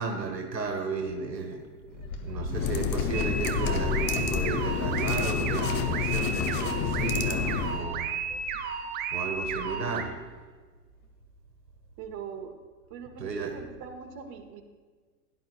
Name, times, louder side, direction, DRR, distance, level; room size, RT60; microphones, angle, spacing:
voice 1, 0.0-1.6 1.9-8.1 8.6-8.7 9.1-10.1 13.2-13.5, right 4 dB, 85° right, 4 dB, 1.4 m, -34 dB
Wind, 1.9-10.0, left 2 dB, 65° left, 1.9 m, -38 dB
sound 1, 2.5-7.9, left 7 dB, 25° left, 0.5 m, -29 dB
sound 2, 3.1-10.0, right 6 dB, 20° right, 0.6 m, -33 dB
voice 2, 12.0-12.6 12.9-14.6, right 7 dB, 40° right, 4 dB, 1.4 m, -42 dB
16.5 x 10.5 x 2.4 m, 1.5 s
figure-of-eight pair, 100°, 49 cm